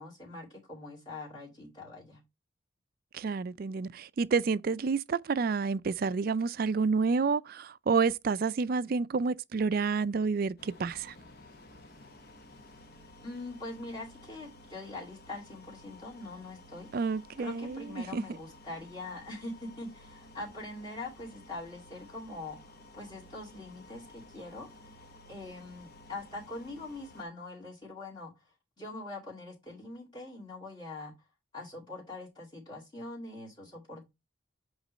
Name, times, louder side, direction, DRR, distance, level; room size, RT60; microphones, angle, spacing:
voice 1, 0.0-2.2 13.2-16.9 17.4-25.0 25.3-28.3 28.8-31.1 31.5-34.0, left 2 dB, 25° left, 2.3 m, -43 dB
voice 2, 3.1-11.1 16.9-18.2, right 4 dB, 45° right, 0.3 m, -29 dB
sound 1, 10.6-27.2, left 1 dB, 50° left, 1.0 m, -54 dB
8.1 x 3.2 x 5.1 m
head